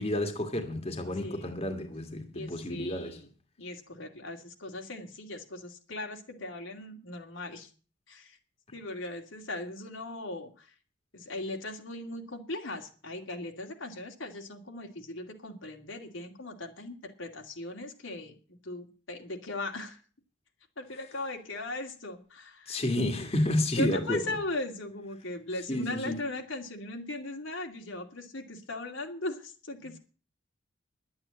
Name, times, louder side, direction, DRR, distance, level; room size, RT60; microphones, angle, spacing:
voice 1, 0.0-3.2 22.7-24.2 25.7-26.2, left 1 dB, 30° left, 1.9 m, -30 dB
voice 2, 1.2-1.6 2.3-3.3 3.6-7.7 8.1-8.4 8.7-10.7 11.1-18.4 18.6-20.0 20.8-22.8 23.8-30.0, left 2 dB, 75° left, 2.5 m, -38 dB
11.5 x 8.8 x 8.8 m
head